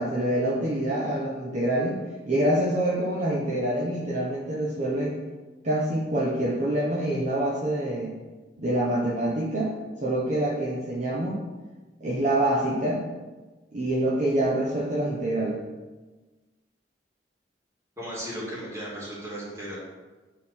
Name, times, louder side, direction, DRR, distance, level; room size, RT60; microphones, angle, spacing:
voice 1, 0.0-2.0 2.3-5.2 5.6-8.1 8.6-9.7 10.0-11.4 12.0-13.1 13.7-15.6, right 1 dB, 45° right, -5 dB, 1.0 m, -26 dB
voice 2, 18.0-19.8, equal, 15° right, -7 dB, 2.4 m, -35 dB
8.6 x 3.9 x 4.2 m, 1.2 s
head